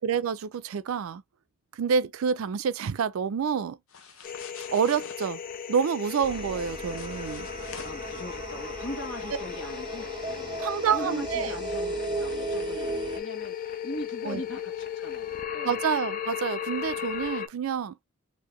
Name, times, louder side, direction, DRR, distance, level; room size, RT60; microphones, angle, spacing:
voice 1, 0.0-1.2 1.7-3.8 4.7-5.4 5.7-7.5 10.6-11.6 14.2-14.4 15.6-18.0, right 7 dB, 85° right, 0.4 m, -28 dB
sound 1, 3.9-5.3 6.5-8.2, left 6 dB, 85° left, 0.7 m, -47 dB
sound 2, 4.2-17.5, left 9 dB, 40° left, 0.4 m, -36 dB
sound 3, 6.2-13.2, right 3 dB, 20° right, 0.4 m, -36 dB
voice 2, 7.8-15.8, left 1 dB, 65° left, 1.3 m, -40 dB
3.7 x 2.6 x 3.0 m
head